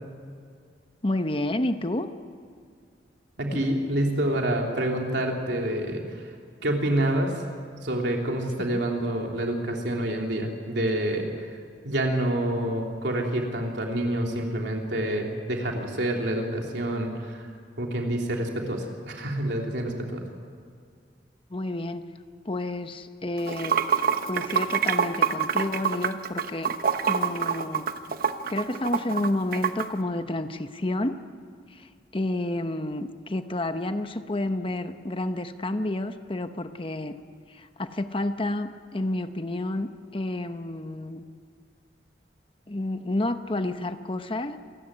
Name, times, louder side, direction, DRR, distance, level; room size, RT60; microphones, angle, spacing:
voice 1, 1.0-2.1 3.5-3.7 8.6-8.8 21.5-22.0 22.4-23.8 24.2-26.7 27.1-27.9 28.5-31.2 31.7-37.2 37.5-41.2 42.7-44.6, left 1 dB, 30° left, 9 dB, 0.9 m, -30 dB
voice 2, 3.4-6.4 6.6-7.4 7.8-20.2, right 1 dB, 75° right, 1 dB, 3.5 m, -28 dB
Water / Sink (filling or washing), 23.4-29.9, right 7 dB, 55° right, 0.9 m, -26 dB
27.5 x 15.5 x 9.9 m, 2.2 s
head